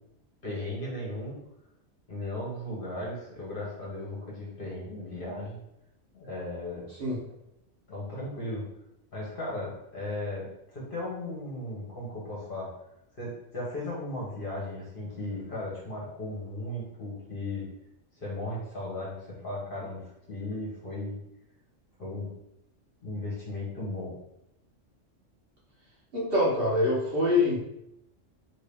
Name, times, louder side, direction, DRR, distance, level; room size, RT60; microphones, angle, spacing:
voice 1, 0.4-1.4 2.1-5.6 6.1-6.9 7.9-8.6 9.1-12.7 13.2-17.7 18.2-21.2 22.0-22.3 23.0-24.2, left 1 dB, 45° left, -5 dB, 1.2 m, -36 dB
voice 2, 26.1-27.6, left 2 dB, 50° right, -7 dB, 1.1 m, -24 dB
2.9 x 2.8 x 3.4 m, 0.82 s
omnidirectional pair, 1.3 m